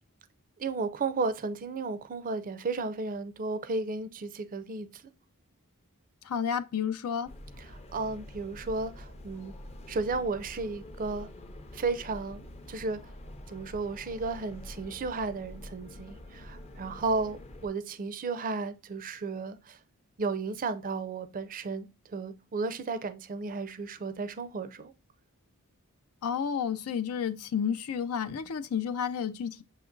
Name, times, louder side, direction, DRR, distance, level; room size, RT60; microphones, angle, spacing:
voice 1, 0.6-4.9 7.6-9.5 9.9-11.3 11.7-13.0 13.5-19.8 20.2-24.9, right 3 dB, 40° right, 0.4 m, -34 dB
voice 2, 6.2-7.3 26.2-29.6, left 7 dB, 80° left, 0.4 m, -31 dB
sound 1, 7.3-17.7, left 1 dB, 30° left, 0.5 m, -46 dB
7.2 x 2.9 x 2.5 m
head